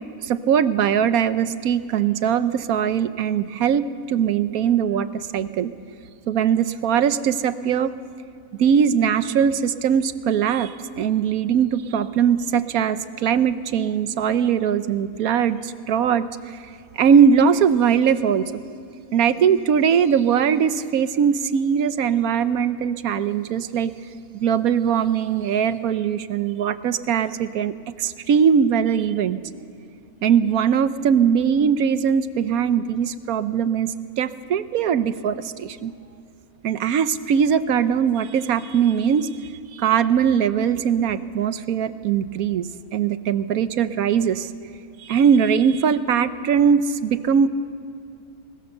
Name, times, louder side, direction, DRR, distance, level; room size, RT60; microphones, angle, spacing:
voice 1, 0.2-5.7 6.3-7.9 8.6-16.6 17.0-18.4 19.1-23.9 24.3-27.7 28.0-29.4 30.2-35.9 36.6-39.3 39.7-42.7 42.9-44.5 45.0-47.5, right 7 dB, 75° right, 13 dB, 1.2 m, -20 dB
21.5 x 20.5 x 6.7 m, 2.6 s
omnidirectional pair, 1.6 m